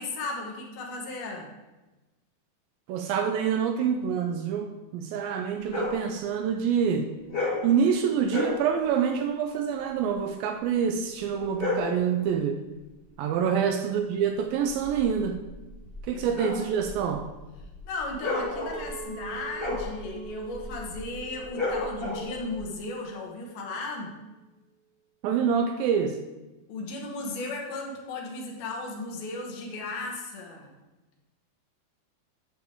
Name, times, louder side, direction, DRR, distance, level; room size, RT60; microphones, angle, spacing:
voice 1, 0.0-1.5 13.4-13.6 16.1-16.4 17.9-24.2 26.7-30.7, left 2 dB, 75° left, 0 dB, 2.8 m, -35 dB
voice 2, 2.9-7.1 7.6-12.6 13.2-15.4 16.1-17.2 25.2-26.2, right 7 dB, 80° right, 5 dB, 2.2 m, -26 dB
sound 1, 5.6-6.0 7.3-7.7 8.2-8.6 11.3-12.0 14.5-22.6, left 2 dB, 35° left, 0.9 m, -33 dB
Chink clink, 18.7-23.9, right 7 dB, 60° right, 1.5 m, -46 dB
9.4 x 6.9 x 3.6 m, 1.1 s
omnidirectional pair, 4.4 m